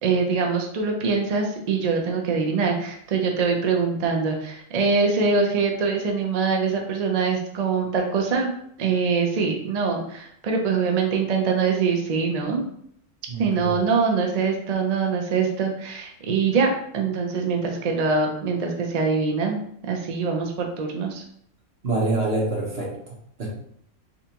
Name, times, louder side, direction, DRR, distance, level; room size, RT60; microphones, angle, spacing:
voice 1, 0.0-8.5 8.8-12.7 13.4-19.6 19.9-21.2, right 5 dB, 70° right, 2 dB, 0.4 m, -23 dB
voice 2, 13.3-13.7 21.8-23.1 23.4-23.5, right 2 dB, 50° right, -2 dB, 1.2 m, -26 dB
3.9 x 3.4 x 2.8 m, 0.68 s
omnidirectional pair, 1.4 m